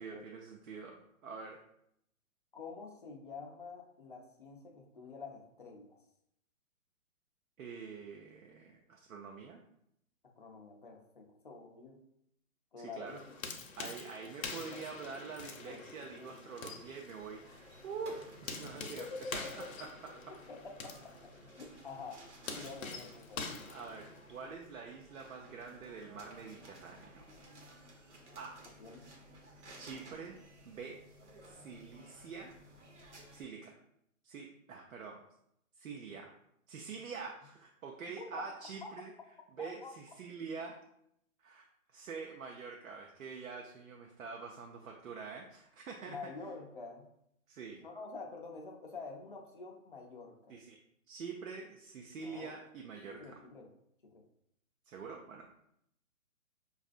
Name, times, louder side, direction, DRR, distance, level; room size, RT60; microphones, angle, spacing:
voice 1, 0.0-1.6 7.6-9.6 12.8-13.2 13.8-17.4 17.8-20.4 22.5-22.7 23.6-27.2 28.4-28.6 29.8-30.4 30.6-31.0 31.5-32.5 33.3-33.8 34.2-35.2 35.8-36.3 36.7-39.1 39.5-40.8 41.4-41.7 41.9-46.2 47.5-47.8 50.5-50.8 51.1-53.4 54.9-55.6, right 5 dB, 80° right, 1 dB, 0.7 m, -46 dB
voice 2, 2.5-6.0 10.4-12.0 12.7-13.2 14.4-14.9 15.6-15.8 16.1-16.3 18.8-19.7 20.1-20.2 20.5-21.1 21.5-22.3 22.6-23.5 28.8-29.0 29.9-30.1 38.2-38.4 39.8-39.9 46.1-47.1 47.8-50.6 52.2-52.5 53.1-53.7 54.0-54.2, left 4 dB, 40° left, 2 dB, 0.5 m, -47 dB
sound 1, 13.1-24.5, left 4 dB, 70° left, 0.8 m, -46 dB
sound 2, 16.8-33.4, right 1 dB, 55° right, 1.0 m, -56 dB
5.3 x 2.4 x 2.4 m, 0.75 s
hypercardioid pair, 175°, 41 cm